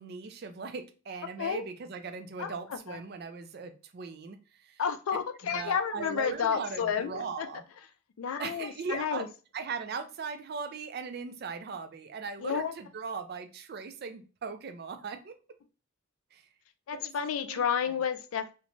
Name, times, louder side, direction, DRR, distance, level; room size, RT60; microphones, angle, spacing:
voice 1, 0.0-4.8 5.4-7.6 8.4-9.2 9.5-15.3 16.3-16.5 16.9-17.1 17.4-17.9, right 5 dB, 50° right, 9 dB, 0.3 m, -39 dB
voice 2, 4.8-7.5 8.2-9.3 12.4-12.7 16.9-18.5, left 7 dB, 85° left, 9 dB, 0.4 m, -31 dB
2.6 x 2.1 x 2.9 m, 0.34 s
head